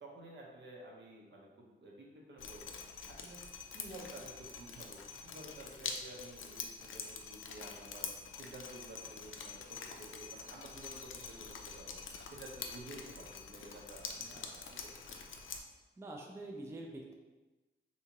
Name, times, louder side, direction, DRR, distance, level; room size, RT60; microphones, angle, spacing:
voice 1, 0.0-2.8 3.1-3.4 3.7-8.1 8.4-12.0 12.3-15.4, right 1 dB, 65° right, -2 dB, 0.8 m, -52 dB
Drip, 2.4-15.6, left 5 dB, 80° left, 0.4 m, -46 dB
voice 2, 16.0-17.1, right 2 dB, 15° right, 0 dB, 0.3 m, -46 dB
3.4 x 2.8 x 2.9 m, 1.2 s
wide cardioid pair, 105°, 21 cm